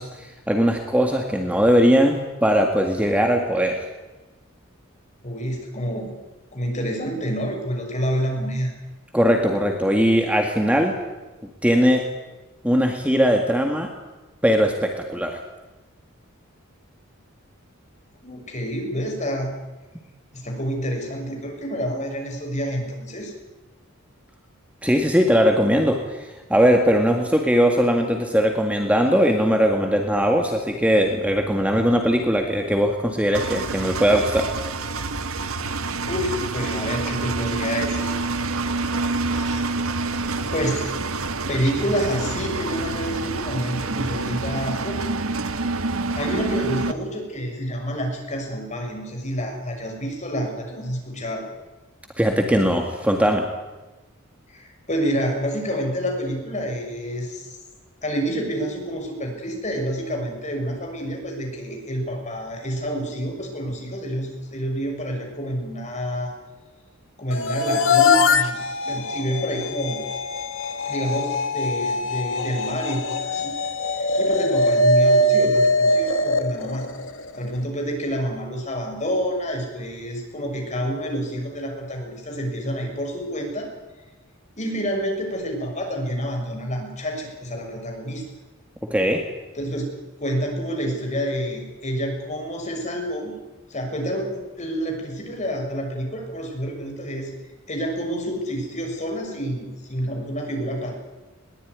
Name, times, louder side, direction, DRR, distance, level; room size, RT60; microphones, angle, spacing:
voice 1, 0.0-3.9 9.1-10.9 11.6-12.0 12.6-13.9 14.4-15.4 24.8-34.5 52.2-53.4 88.9-89.2, equal, 5° right, 3 dB, 2.0 m, -20 dB
voice 2, 5.2-6.2 6.5-8.7 18.2-19.5 20.3-23.3 36.1-38.3 39.3-39.6 40.5-40.9 41.5-45.1 46.1-51.5 54.5-57.6 58.0-66.3 67.2-70.0 70.9-73.5 73.9-76.9 77.3-83.7 84.6-88.2 89.5-89.9 90.2-93.3 93.7-97.3 97.7-100.9, equal, 35° left, 2 dB, 6.5 m, -28 dB
Engine, 33.3-46.9, right 3 dB, 80° right, 1.4 m, -27 dB
sound 1, 67.3-77.5, left 2 dB, 65° left, 1.6 m, -22 dB
21.5 x 20.0 x 9.7 m, 1.1 s
head